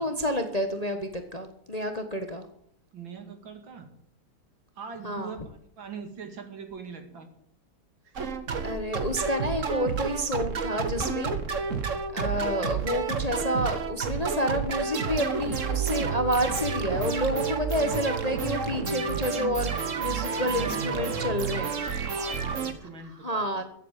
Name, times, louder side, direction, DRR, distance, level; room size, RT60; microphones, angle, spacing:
voice 1, 0.0-2.5 5.0-5.3 8.6-11.4 12.1-19.7 20.0-21.7 23.2-23.6, equal, 25° left, 7 dB, 1.0 m, -29 dB
voice 2, 2.9-3.9 4.8-7.3 8.0-8.2 20.4-21.6 22.1-23.6, right 5 dB, 70° right, 6 dB, 3.0 m, -42 dB
sound 1, 8.2-22.7, right 6 dB, 40° right, 1.5 m, -30 dB
14.0 x 8.5 x 9.0 m, 0.68 s
omnidirectional pair, 2.2 m